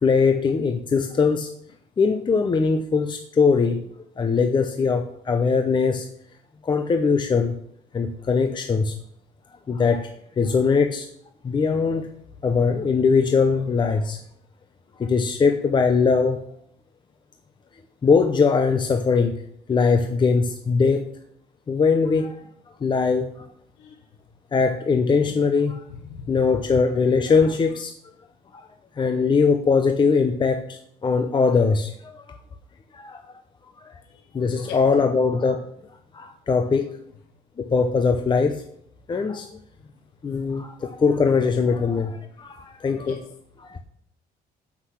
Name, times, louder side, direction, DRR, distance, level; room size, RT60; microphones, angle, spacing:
voice 1, 0.0-1.5 2.0-3.9 4.2-6.1 6.6-7.6 7.9-9.0 9.7-10.1 10.4-11.1 11.4-12.1 12.4-14.2 15.0-16.4 18.0-19.4 19.7-21.1 21.7-22.4 22.8-23.5 24.5-25.8 26.3-27.9 28.5-28.7 28.9-32.4 32.9-33.4 33.8-34.0 34.3-35.7 36.1-37.0 37.6-38.6 39.1-39.5 40.2-43.2 43.6-43.8, left 5 dB, 30° left, 6 dB, 0.7 m, -21 dB
voice 2, 25.9-26.4 34.0-34.3 34.6-34.9 42.0-42.1 43.0-43.3, left 7 dB, 90° left, 4 dB, 1.1 m, -40 dB
8.1 x 6.0 x 5.8 m, 0.68 s
cardioid pair, 110°, 17 cm